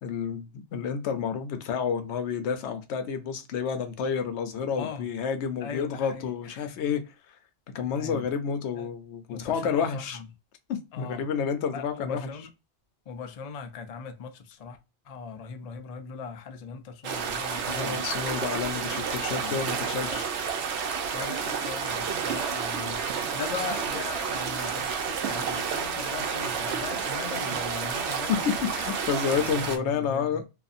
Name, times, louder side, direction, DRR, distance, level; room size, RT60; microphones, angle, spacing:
voice 1, 0.0-7.0 7.7-10.2 10.7-12.3 17.6-20.3 28.3-30.4, left 7 dB, 75° left, 0.9 m, -30 dB
voice 2, 4.8-5.1 5.6-6.7 7.9-8.3 8.8-8.9 9.3-10.3 10.9-11.3 11.7-12.5 13.1-14.8 15.0-18.1 19.4-19.6 20.0-20.2 21.1-28.5 29.2-30.4, left 5 dB, 55° left, 0.4 m, -39 dB
sound 1, 17.0-29.8, right 6 dB, 75° right, 0.9 m, -30 dB
2.6 x 2.6 x 2.4 m
omnidirectional pair, 1.2 m